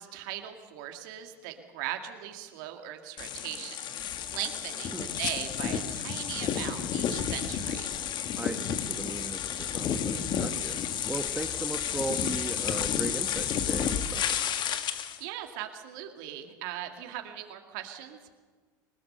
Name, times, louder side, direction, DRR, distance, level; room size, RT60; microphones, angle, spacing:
voice 1, 0.0-7.9 15.0-18.3, right 12 dB, 70° right, 5 dB, 2.1 m, -39 dB
sound 1, 3.2-15.2, left 8 dB, 45° left, 1.7 m, -31 dB
voice 2, 8.4-10.8 11.1-14.2, right 2 dB, 10° right, 7 dB, 1.3 m, -37 dB
21.0 x 20.0 x 6.7 m, 1.4 s
hypercardioid pair, 85°, 11 cm